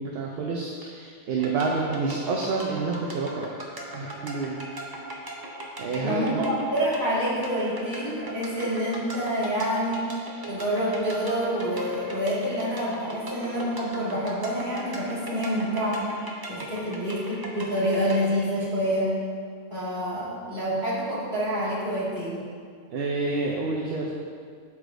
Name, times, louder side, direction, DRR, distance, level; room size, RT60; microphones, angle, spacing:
voice 1, 0.0-3.6 3.9-4.6 5.8-6.5 22.9-24.1, right 3 dB, 60° right, -1 dB, 0.8 m, -28 dB
sound 1, 1.4-18.2, right 1 dB, 25° right, 0.6 m, -39 dB
voice 2, 6.0-10.1 10.5-16.1 16.5-19.1 19.7-22.4, equal, 40° right, -9 dB, 2.2 m, -27 dB
12.0 x 4.8 x 2.6 m, 2.1 s
omnidirectional pair, 1.2 m